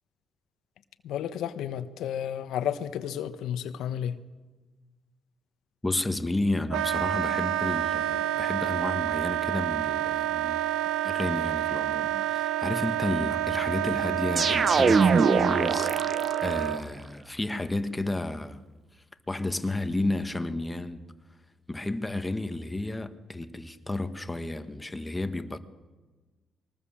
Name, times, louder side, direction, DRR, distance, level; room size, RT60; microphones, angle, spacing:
voice 1, 1.0-4.1, left 9 dB, 80° left, 1.1 m, -32 dB
voice 2, 5.8-10.6 11.0-18.6 19.3-21.0 21.7-25.6, left 2 dB, 15° left, 1.5 m, -32 dB
Wind instrument woodwind instrument, 6.7-16.8, right 12 dB, 90° right, 0.9 m, -28 dB
sound 1, 14.4-16.6, right 5 dB, 40° right, 0.9 m, -23 dB
22.5 x 19.0 x 7.4 m
cardioid pair, 90°, 0 cm